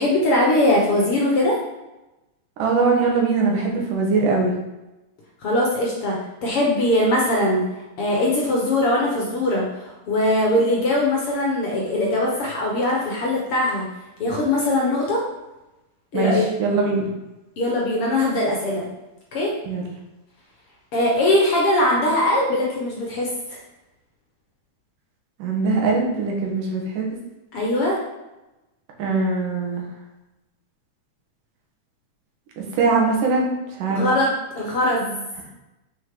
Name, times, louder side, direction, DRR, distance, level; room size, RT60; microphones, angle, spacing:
voice 1, 0.0-1.6 5.4-6.2 6.4-7.7 8.0-13.9 14.2-15.2 16.1-16.5 17.6-18.9 19.3-19.5 20.9-23.3 27.5-28.0 33.9-35.2, left 1 dB, 55° left, -3 dB, 1.7 m, -21 dB
voice 2, 2.6-4.5 16.1-16.3 16.6-17.1 19.7-19.8 25.4-27.1 29.0-29.9 32.6-33.5 33.8-34.0, right 4 dB, 85° right, -1 dB, 3.0 m, -21 dB
6.4 x 6.1 x 3.8 m, 1.0 s
omnidirectional pair, 3.6 m